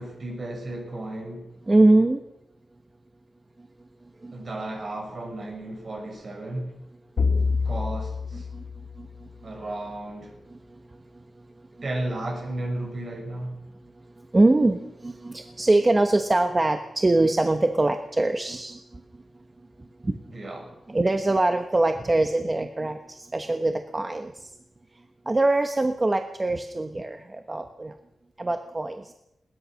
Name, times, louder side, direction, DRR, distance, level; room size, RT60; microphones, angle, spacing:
voice 1, 0.0-1.5 4.3-6.8 7.6-8.5 9.4-10.4 11.8-13.6 20.3-20.8, right 1 dB, 45° right, 6.4 m, -34 dB
voice 2, 1.7-2.2 4.2-4.3 8.5-8.6 9.0-9.1 14.3-18.8 20.0-20.2 20.9-24.5 25.3-27.9 28.4-29.1, right 2 dB, 20° right, 1.1 m, -23 dB
sound 1, 7.2-9.6, left 4 dB, 90° left, 3.1 m, -27 dB
21.5 x 19.5 x 6.4 m
wide cardioid pair, 160°, 0 cm